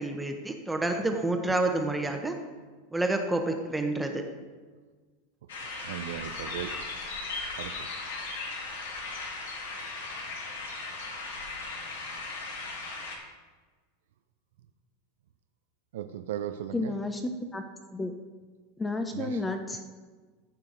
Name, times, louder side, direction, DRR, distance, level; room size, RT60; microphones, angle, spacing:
voice 1, 0.0-2.3 2.9-4.2 6.4-6.8, right 2 dB, 5° right, 4 dB, 1.0 m, -29 dB
sound 1, 5.5-13.2, left 3 dB, 85° left, 2.0 m, -37 dB
voice 2, 5.6-6.7 7.6-7.9 15.9-17.0 19.1-19.4, right 11 dB, 80° right, 9 dB, 0.5 m, -37 dB
voice 3, 16.7-17.6 17.9-18.1 18.8-19.9, left 2 dB, 15° left, 6 dB, 0.6 m, -32 dB
14.5 x 5.8 x 3.9 m, 1.4 s
supercardioid pair, 125°, 0 cm